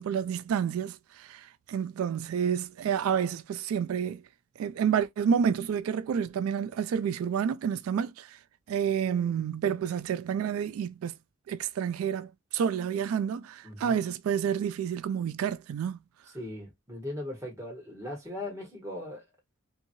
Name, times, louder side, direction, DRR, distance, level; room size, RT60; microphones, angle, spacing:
voice 1, 0.0-4.2 4.6-8.4 8.7-11.1 11.5-16.0, right 7 dB, 90° right, 0.3 m, -29 dB
voice 2, 13.6-14.0 16.2-19.2, left 1 dB, 15° right, 1.4 m, -39 dB
2.8 x 2.7 x 2.6 m
head